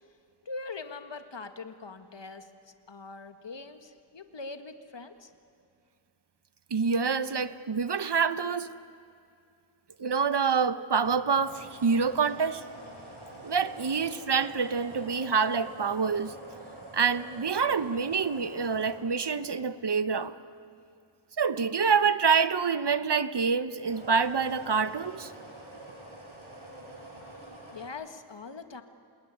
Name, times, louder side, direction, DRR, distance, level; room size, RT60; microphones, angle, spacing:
voice 1, 0.4-2.5 2.9-5.3 27.7-28.8, left 3 dB, 60° left, 8 dB, 1.9 m, -42 dB
voice 2, 6.7-8.7 10.0-12.6 13.4-16.3 16.9-20.3 21.4-25.3, right 5 dB, 55° right, 13 dB, 1.1 m, -26 dB
sound 1, 11.0-20.2 23.7-27.9, right 1 dB, 80° right, 7.0 m, -46 dB
27.5 x 20.5 x 9.7 m, 2.5 s
cardioid pair, 45°, 48 cm